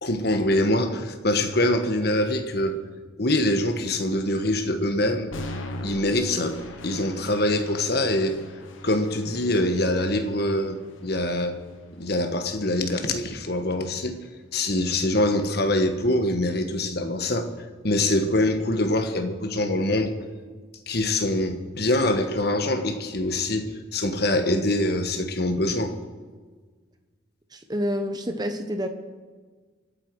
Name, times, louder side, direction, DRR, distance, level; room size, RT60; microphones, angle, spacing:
voice 1, 0.0-2.8 3.2-5.3 5.8-8.4 8.8-11.6 12.0-14.2 14.5-17.5 17.8-20.1 20.9-25.9, left 1 dB, 50° left, 6 dB, 1.5 m, -24 dB
sound 1, 5.3-13.3, left 1 dB, 80° left, 1.5 m, -40 dB
voice 2, 27.5-28.9, equal, 20° right, 7 dB, 1.2 m, -28 dB
27.0 x 9.0 x 4.8 m, 1.4 s
head